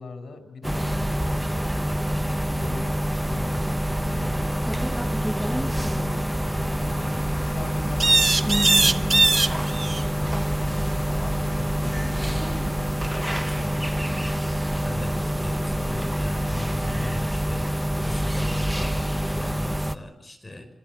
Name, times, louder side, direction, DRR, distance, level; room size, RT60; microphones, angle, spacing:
voice 1, 0.0-1.5 2.3-14.3, left 4 dB, 80° left, 8 dB, 5.7 m, -41 dB
sound 1, 0.6-20.0, equal, 5° right, 1.2 m, -26 dB
sound 2, 0.7-19.9, right 4 dB, 70° right, 7.8 m, -44 dB
sound 3, 1.4-1.5 1.7-2.3 8.0-10.1 12.9-13.0 16.6-16.7, right 3 dB, 30° right, 1.2 m, -20 dB
voice 2, 14.8-20.7, left 2 dB, 15° left, 6 dB, 5.6 m, -37 dB
28.5 x 27.0 x 7.5 m, 0.71 s
wide cardioid pair, 120°, 0 cm